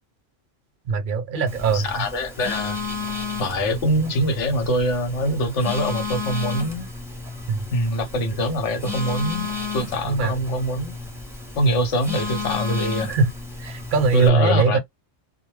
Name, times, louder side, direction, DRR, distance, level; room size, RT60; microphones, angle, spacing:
voice 1, 0.9-1.9 7.5-7.6 10.1-10.3 13.1-13.3 13.6-14.8, right 4 dB, 55° right, 0.6 m, -20 dB
Telephone, 1.5-14.3, left 4 dB, 5° right, 0.8 m, -32 dB
voice 2, 1.7-2.8 3.4-6.9 7.7-9.5 9.7-11.0 11.6-13.2 14.1-14.8, equal, 70° left, 1.2 m, -24 dB
2.3 x 2.2 x 3.0 m
omnidirectional pair, 1.3 m